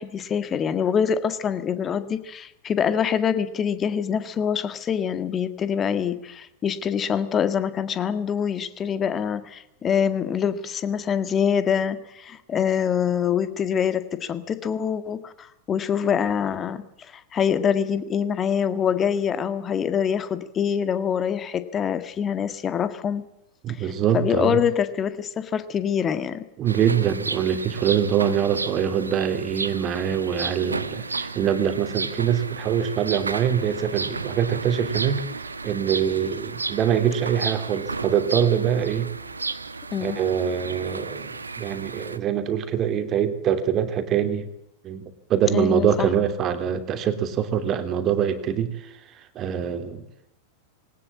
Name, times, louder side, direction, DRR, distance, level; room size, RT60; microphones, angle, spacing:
voice 1, 0.0-23.3 23.8-26.4 39.9-40.2 45.5-46.1, left 8 dB, 25° left, 12 dB, 1.7 m, -25 dB
voice 2, 23.6-24.6 26.6-35.2 35.6-39.1 40.0-44.5 44.8-50.0, right 8 dB, 30° right, 9 dB, 2.9 m, -24 dB
sound 1, 26.7-42.2, right 4 dB, 80° right, 1.2 m, -33 dB
21.0 x 18.5 x 8.6 m, 0.81 s
figure-of-eight pair, 90°, 0 cm